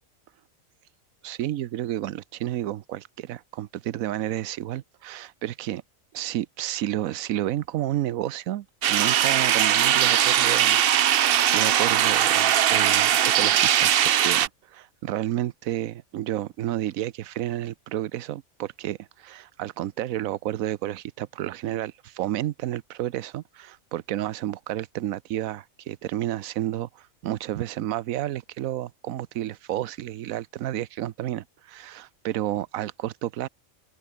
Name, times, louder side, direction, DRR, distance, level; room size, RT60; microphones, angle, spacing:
voice 1, 1.2-5.8 6.1-10.8 11.1-33.5, right 13 dB, 85° right, 1.1 m, -31 dB
sound 1, 8.8-14.5, right 10 dB, 55° right, 0.7 m, -20 dB
omnidirectional pair, 1.4 m